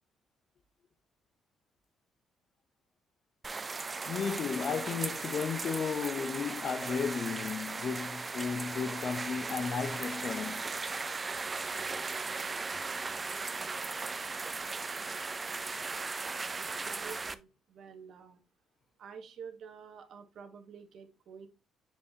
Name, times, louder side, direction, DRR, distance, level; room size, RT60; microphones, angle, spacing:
sound 1, 3.4-17.3, right 4 dB, 30° right, 0.5 m, -37 dB
voice 1, 4.1-10.6, left 6 dB, 55° left, 0.8 m, -34 dB
voice 2, 16.6-18.4 19.0-21.5, right 6 dB, 65° right, 1.2 m, -49 dB
7.4 x 4.8 x 2.8 m
cardioid pair, 85°, 0 cm